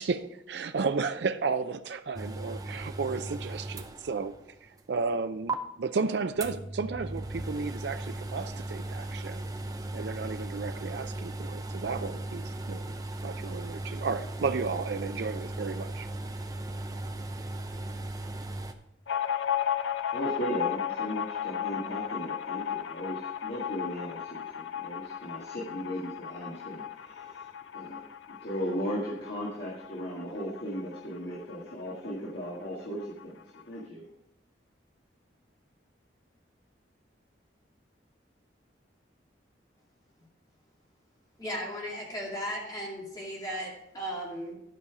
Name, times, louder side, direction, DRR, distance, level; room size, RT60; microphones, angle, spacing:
voice 1, 0.0-4.3 4.6-9.5 9.9-13.0 13.2-16.1, right 4 dB, 70° right, 10 dB, 0.4 m, -33 dB
sound 1, 2.2-4.5 4.8-4.9 5.5-5.6 6.4-18.7, right 2 dB, 20° right, 0.5 m, -37 dB
sound 2, 19.1-32.2 32.5-32.6 32.9-33.6, left 9 dB, 80° left, 0.5 m, -35 dB
voice 2, 20.1-27.4 27.7-28.0 28.3-33.4 33.6-34.0, equal, 65° left, -5 dB, 1.7 m, -36 dB
voice 3, 41.4-44.5, equal, 20° left, -4 dB, 2.5 m, -36 dB
11.5 x 5.6 x 4.8 m, 0.78 s
head